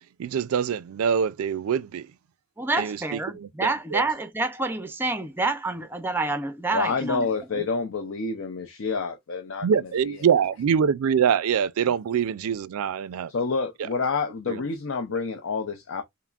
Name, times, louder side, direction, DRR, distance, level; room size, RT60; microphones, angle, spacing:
voice 1, 0.2-2.1 2.7-4.0 9.6-13.3 13.8-13.9 14.5-14.6, right 7 dB, 85° right, 0.4 m, -24 dB
voice 2, 2.6-7.3 7.5-7.6, right 3 dB, 10° right, 0.5 m, -28 dB
voice 3, 6.7-9.7 13.3-16.0, left 4 dB, 60° left, 0.5 m, -28 dB
5.6 x 2.0 x 2.3 m
head